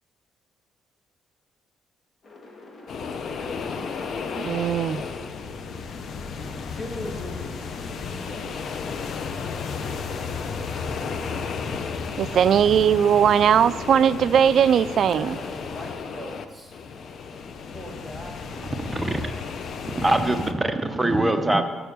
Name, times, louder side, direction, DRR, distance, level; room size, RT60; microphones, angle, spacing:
sound 1, 2.2-14.6 15.2-17.3, left 2 dB, 45° left, 1.6 m, -48 dB
sound 2, 2.9-20.5, left 5 dB, 60° left, 0.7 m, -33 dB
voice 1, 4.4-5.0 12.2-15.4, right 8 dB, 65° right, 16 dB, 0.3 m, -19 dB
voice 2, 6.4-8.5 15.1-16.8 17.7-18.4, left 1 dB, 5° left, 1 dB, 1.9 m, -39 dB
voice 3, 18.6-19.4 19.8-21.6, right 2 dB, 15° right, 6 dB, 0.8 m, -23 dB
6.9 x 6.2 x 7.5 m, 1.3 s
cardioid pair, 90°, 0 cm